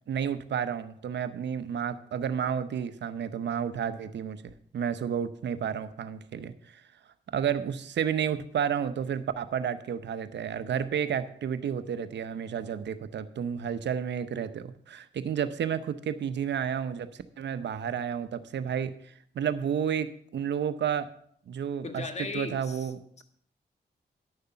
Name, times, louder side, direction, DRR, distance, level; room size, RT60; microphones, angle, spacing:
voice 1, 0.1-6.8 7.3-21.1 21.5-22.0 22.3-23.2, right 8 dB, 75° right, 12 dB, 0.8 m, -31 dB
voice 2, 21.8-22.9 23.2-23.3, left 4 dB, 35° left, 6 dB, 1.5 m, -37 dB
10.5 x 6.7 x 5.6 m, 0.64 s
cardioid pair, 55°, 19 cm